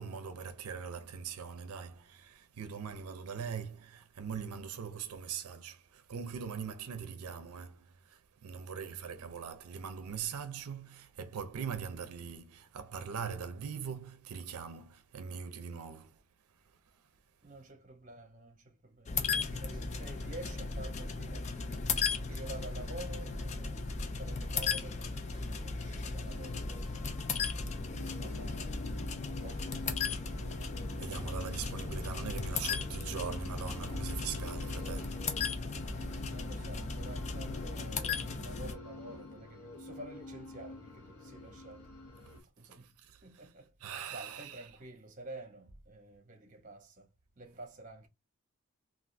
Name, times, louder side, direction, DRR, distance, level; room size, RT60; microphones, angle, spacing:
voice 1, 0.0-16.2 16.5-17.1 31.0-36.0 42.3-42.4 42.6-43.5 43.8-44.6, right 6 dB, 80° right, 0.4 m, -42 dB
voice 2, 17.4-22.0 22.3-27.2 28.0-28.9 29.3-30.9 36.3-41.9 42.2-42.3 42.6-47.1 47.4-48.1, right 2 dB, 35° right, 0.7 m, -50 dB
sound 1, 19.1-38.7, left 5 dB, 30° left, 0.3 m, -37 dB
sound 2, 19.5-37.5, equal, 5° left, 1.0 m, -45 dB
sound 3, 26.2-42.4, left 2 dB, 85° left, 0.8 m, -47 dB
3.3 x 2.4 x 2.5 m
head